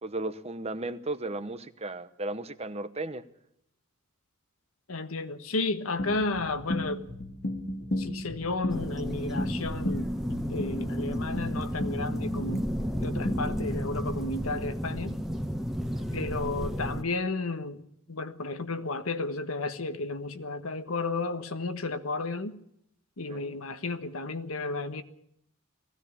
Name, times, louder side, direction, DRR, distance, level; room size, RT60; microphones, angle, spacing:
voice 1, 0.0-3.2 15.9-16.1 23.3-23.5, right 2 dB, 30° right, 0.9 m, -35 dB
voice 2, 4.9-7.1 8.0-12.7 13.0-15.2 16.1-17.8 18.1-22.6 23.2-25.0, left 3 dB, 85° left, 1.4 m, -33 dB
sound 1, 6.0-13.7, left 1 dB, 55° left, 2.3 m, -35 dB
sound 2, 8.7-17.0, equal, ahead, 1.0 m, -32 dB
19.5 x 16.0 x 8.4 m
head